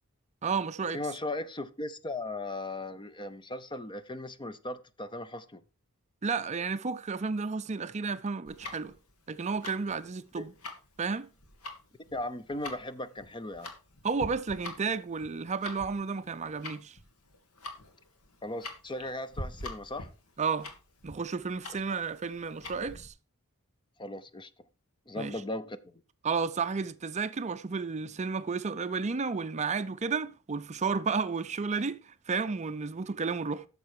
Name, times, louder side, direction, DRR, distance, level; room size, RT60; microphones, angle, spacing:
voice 1, 0.4-1.0 6.2-8.9 9.3-10.5 11.0-11.3 14.0-17.0 20.4-20.7 21.0-23.1 25.2-25.4 26.2-33.7, right 5 dB, 30° right, 0.5 m, -32 dB
voice 2, 0.9-5.6 10.4-10.5 12.1-13.7 18.4-20.1 24.0-24.5 25.1-26.0, left 2 dB, 20° left, 0.7 m, -37 dB
Tick-tock, 8.4-23.1, left 2 dB, 75° left, 2.1 m, -45 dB
11.5 x 6.8 x 4.7 m
head